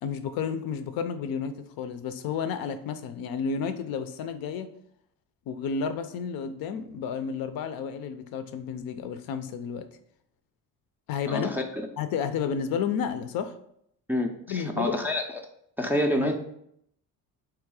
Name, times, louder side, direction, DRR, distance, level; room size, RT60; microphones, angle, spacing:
voice 1, 0.0-4.7 5.5-9.9 11.1-11.5 12.0-13.5 14.5-15.0, left 6 dB, 75° left, 10 dB, 0.5 m, -31 dB
voice 2, 11.3-11.6 14.1-15.4 15.8-16.3, left 1 dB, 5° right, 1 dB, 0.3 m, -27 dB
3.7 x 3.1 x 4.7 m, 0.72 s
cardioid pair, 130°, 36 cm